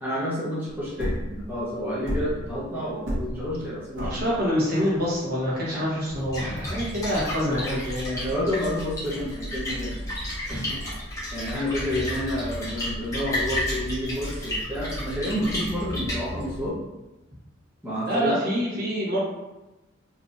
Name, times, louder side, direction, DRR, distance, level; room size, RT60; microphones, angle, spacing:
voice 1, 0.0-4.3 5.7-6.0 6.4-6.7 7.5-7.6 8.1-10.0 10.5-10.8 11.3-16.8 17.8-18.4, left 1 dB, 10° right, -9 dB, 0.7 m, -30 dB
sound 1, 0.7-6.6, equal, 70° right, 1.0 m, -32 dB
voice 2, 4.0-8.2 10.5-10.7 18.1-19.2, equal, 50° right, -6 dB, 1.1 m, -26 dB
Splash splatter, 6.1-16.7, equal, 15° left, 1.2 m, -32 dB
3.8 x 2.7 x 2.4 m, 1.0 s
head